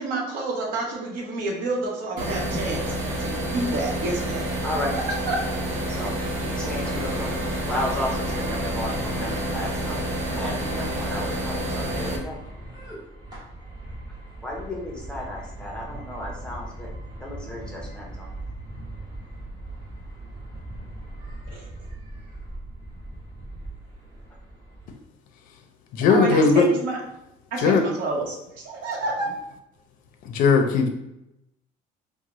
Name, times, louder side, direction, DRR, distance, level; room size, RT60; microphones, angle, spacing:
voice 1, 0.0-4.5 4.9-5.4 21.5-21.7 26.1-27.0 27.5-29.3, right 2 dB, 60° right, 1.0 m, -29 dB
sound 1, 2.2-12.2, right 1 dB, 80° right, 0.8 m, -28 dB
voice 2, 4.6-4.9 5.9-7.3 7.7-10.0 10.4-12.4 14.4-16.9 17.2-18.3, left 1 dB, 5° left, 0.6 m, -33 dB
sound 2, 6.7-24.9, right 1 dB, 25° right, 1.4 m, -39 dB
voice 3, 25.9-26.7 27.6-27.9 30.2-30.9, left 5 dB, 55° left, 0.5 m, -18 dB
3.8 x 2.1 x 3.0 m
cardioid pair, 160°, 16 cm